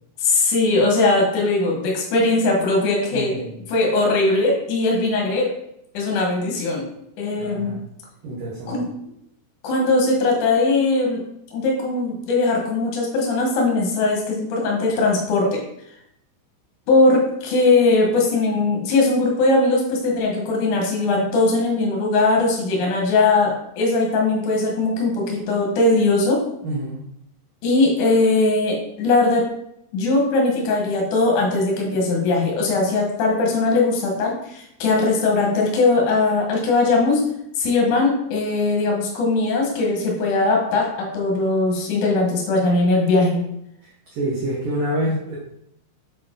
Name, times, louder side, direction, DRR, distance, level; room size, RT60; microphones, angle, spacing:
voice 1, 0.2-5.5 5.9-6.8 7.2-7.8 8.7-8.8 9.6-11.2 11.5-15.6 16.9-26.4 27.6-29.5 29.9-37.2 37.6-43.4, left 3 dB, 80° left, -1 dB, 1.7 m, -20 dB
voice 2, 3.1-3.5 7.4-7.8 8.2-8.8 26.6-27.0 44.1-45.4, right 1 dB, 75° right, -5 dB, 2.0 m, -27 dB
8.6 x 4.3 x 3.8 m, 0.76 s
omnidirectional pair, 5.7 m